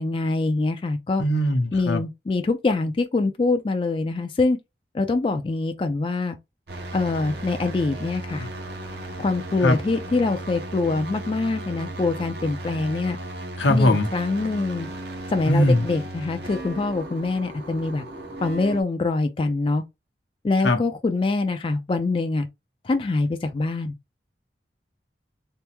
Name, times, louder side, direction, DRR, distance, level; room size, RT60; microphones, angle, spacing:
voice 1, 0.0-1.2 1.7-4.6 4.9-6.4 6.9-8.5 9.2-13.2 13.7-14.9 15.3-18.0 18.4-19.8 20.4-22.5 22.8-23.9, left 3 dB, 30° left, 0.3 m, -24 dB
voice 2, 1.2-2.0 9.6-9.8 13.6-14.1 15.5-15.9 20.6-20.8, left 1 dB, 85° left, 0.8 m, -20 dB
sound 1, 6.7-18.8, right 1 dB, 65° right, 0.9 m, -35 dB
3.4 x 2.0 x 2.9 m
head